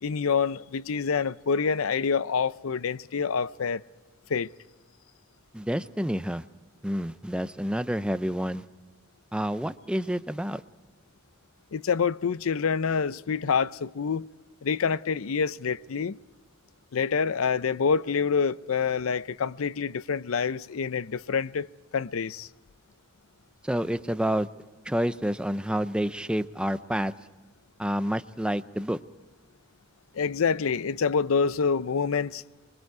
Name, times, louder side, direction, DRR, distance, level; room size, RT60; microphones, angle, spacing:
voice 1, 0.0-3.8 4.3-4.5 11.7-14.3 14.6-16.2 16.9-21.7 21.9-22.5 30.1-32.4, left 5 dB, 90° left, 0.5 m, -27 dB
voice 2, 5.5-6.4 6.8-8.6 9.3-10.6 23.6-24.5 24.9-27.1 27.8-29.0, equal, 5° right, 0.5 m, -28 dB
25.5 x 22.5 x 4.7 m
head